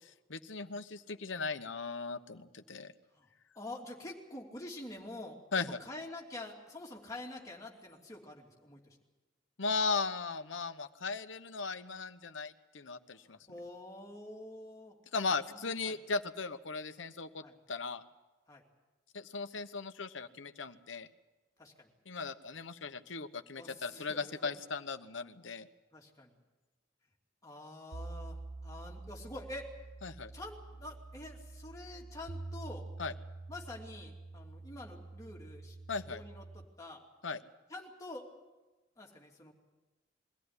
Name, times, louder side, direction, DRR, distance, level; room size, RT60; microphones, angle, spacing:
voice 1, 0.3-2.9 5.5-5.8 9.6-13.4 15.1-18.0 19.1-21.1 22.1-25.7 30.0-30.3 33.0-33.1 35.9-36.2 37.2-37.4, left 4 dB, 85° left, 10 dB, 1.0 m, -37 dB
voice 2, 3.5-9.0 13.2-15.0 15.4-16.0 17.4-17.5 18.5-18.6 21.6-21.9 23.6-24.5 25.9-26.4 27.4-29.7 30.3-32.9 33.5-35.8 36.1-37.0 37.7-38.3 39.0-39.5, left 1 dB, 20° left, -1 dB, 2.9 m, -47 dB
sound 1, 27.9-36.6, right 2 dB, 55° right, 0.7 m, -47 dB
23.0 x 15.5 x 9.7 m, 1.2 s
head